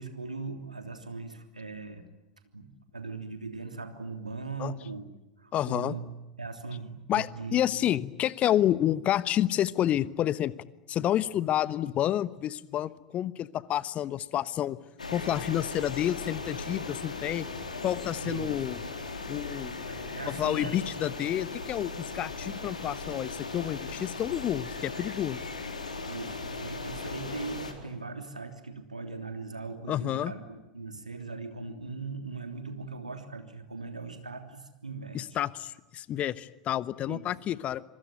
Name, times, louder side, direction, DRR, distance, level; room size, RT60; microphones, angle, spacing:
voice 1, 0.0-2.1 2.5-2.7 2.9-5.1 5.4-6.0 6.4-7.8 18.2-18.6 19.6-20.9 26.1-35.2 37.1-37.4, right 4 dB, 85° right, 6 dB, 3.2 m, -39 dB
voice 2, 5.5-6.0 7.1-10.5 10.9-14.8 15.1-17.5 17.8-18.8 19.3-19.8 20.3-25.4 29.9-30.3 35.1-37.8, left 12 dB, 35° left, 17 dB, 1.1 m, -29 dB
sound 1, 15.0-27.7, left 3 dB, 80° left, 3.9 m, -38 dB
26.0 x 25.0 x 9.0 m, 0.99 s
figure-of-eight pair, 85°, 4 cm